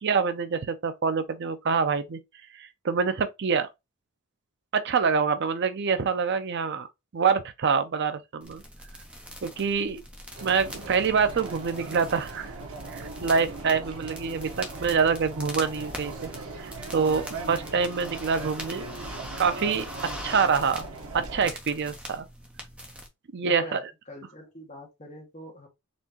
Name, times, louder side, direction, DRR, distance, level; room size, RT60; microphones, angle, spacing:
voice 1, 0.0-2.2 2.6-3.7 4.7-6.9 7.1-8.6 9.4-10.0 10.4-12.5 12.9-16.3 16.6-18.9 19.4-19.9 20.2-20.8 21.1-22.3 23.3-23.8, right 5 dB, 50° right, 0.5 m, -26 dB
sound 1, 8.4-23.1, equal, 5° right, 0.9 m, -43 dB
sound 2, 10.4-21.5, right 3 dB, 75° right, 1.0 m, -39 dB
voice 2, 23.5-25.7, equal, 35° left, 1.7 m, -43 dB
4.2 x 3.7 x 2.9 m
head